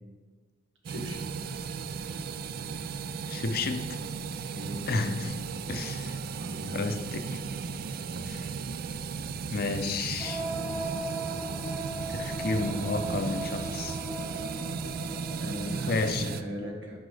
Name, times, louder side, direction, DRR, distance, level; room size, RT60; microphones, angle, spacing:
voice 1, 0.8-1.3 4.5-4.8 6.4-6.9 15.4-17.0, equal, 85° right, 1.6 m, -39 dB
sound 1, 0.9-16.4, right 5 dB, 50° right, 0.3 m, -36 dB
voice 2, 3.3-4.0 4.9-5.3 5.7-6.2 6.6-7.5 8.2-8.5 9.5-10.5 12.1-14.0 15.7-16.3, left 3 dB, 50° left, 0.5 m, -32 dB
sound 2, 10.2-16.0, right 2 dB, ahead, 0.9 m, -37 dB
9.7 x 5.2 x 3.4 m
head